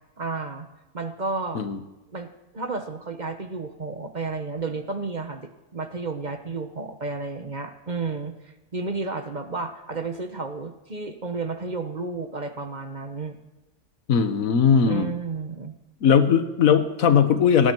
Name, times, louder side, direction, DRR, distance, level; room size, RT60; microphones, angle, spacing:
voice 1, 0.2-0.7 0.9-1.6 2.1-2.3 2.5-13.4 14.9-15.8, right 3 dB, 35° right, 8 dB, 1.0 m, -32 dB
voice 2, 14.1-15.1 16.0-17.7, left 7 dB, 65° left, 10 dB, 1.5 m, -19 dB
18.0 x 16.0 x 4.6 m, 1.1 s
omnidirectional pair, 1.6 m